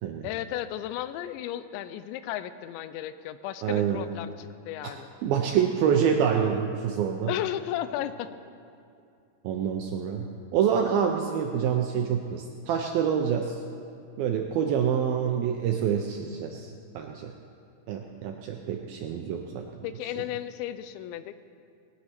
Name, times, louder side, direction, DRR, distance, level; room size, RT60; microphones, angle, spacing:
voice 1, 0.2-5.1 7.3-8.3 19.8-21.3, left 12 dB, 90° left, 13 dB, 2.9 m, -34 dB
voice 2, 3.6-4.0 4.8-4.9 5.2-7.3 9.4-13.6 14.2-17.3 17.9-19.9, right 8 dB, 80° right, 3 dB, 2.1 m, -27 dB
20.0 x 9.9 x 5.9 m, 2.5 s
omnidirectional pair, 5.1 m